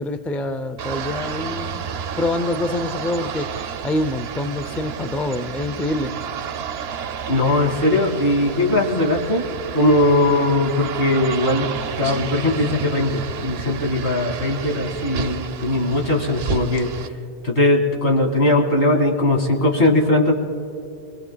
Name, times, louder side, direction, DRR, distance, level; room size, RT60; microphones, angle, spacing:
voice 1, 0.0-1.9 2.2-6.1, left 2 dB, ahead, 8 dB, 0.4 m, -26 dB
sound 1, 0.8-17.1, right 7 dB, 75° right, 0.8 m, -31 dB
voice 2, 7.3-9.4 9.7-11.7 12.0-17.1 17.4-20.3, left 1 dB, 85° left, -1 dB, 2.4 m, -19 dB
25.5 x 22.5 x 2.3 m, 2.5 s
omnidirectional pair, 1.1 m